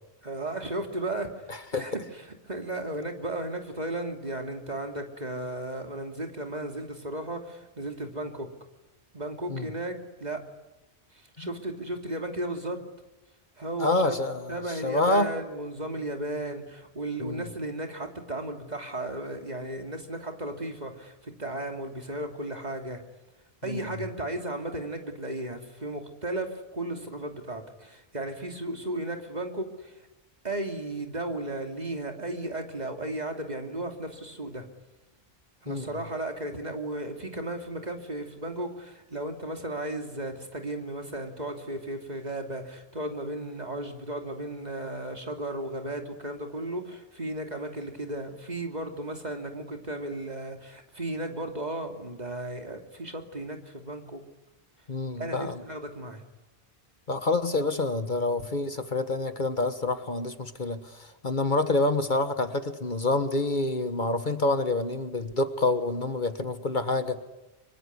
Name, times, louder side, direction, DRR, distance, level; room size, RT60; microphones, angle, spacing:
voice 1, 0.2-1.5 1.7-8.5 9.1-10.4 11.1-12.8 13.6-14.1 14.5-23.0 23.6-30.1 30.4-34.7 35.6-54.2 55.2-56.2, right 1 dB, 40° right, 4 dB, 3.0 m, -35 dB
voice 2, 1.5-1.9 9.5-9.7 13.8-15.3 17.2-17.5 23.6-23.9 35.7-35.9 54.9-55.6 57.1-67.2, left 2 dB, 45° left, 10 dB, 1.6 m, -27 dB
25.0 x 23.5 x 9.7 m, 0.99 s
omnidirectional pair, 1.1 m